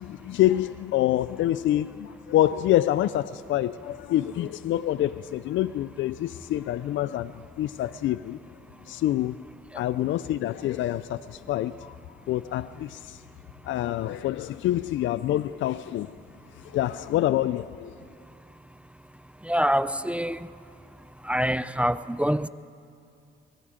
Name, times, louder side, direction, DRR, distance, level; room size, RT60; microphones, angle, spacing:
voice 1, 0.0-8.4 8.9-9.4 9.7-11.9 12.3-13.2 13.6-16.1 16.6-18.0, left 13 dB, 75° left, 0.5 m, -26 dB
voice 2, 19.5-20.4 21.3-22.5, equal, 5° right, 0.4 m, -25 dB
27.5 x 23.0 x 5.1 m
cardioid pair, 90°, 20 cm